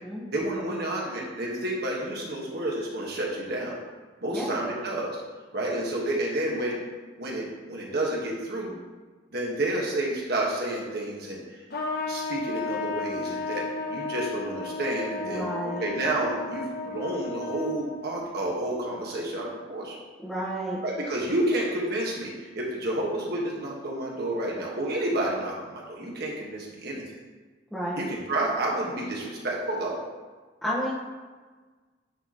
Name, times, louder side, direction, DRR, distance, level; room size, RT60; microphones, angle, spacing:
voice 1, 0.3-3.8 4.2-5.2 5.5-6.8 7.2-8.8 9.3-11.6 12.0-20.0 20.8-27.0 28.0-30.0, right 1 dB, 60° right, -3 dB, 1.5 m, -30 dB
Trumpet, 11.7-18.2, left 3 dB, 55° left, 0.8 m, -33 dB
voice 2, 15.2-15.8 20.2-20.8 27.7-28.0 30.6-30.9, equal, ahead, -9 dB, 1.0 m, -31 dB
9.0 x 3.0 x 4.2 m, 1.4 s
head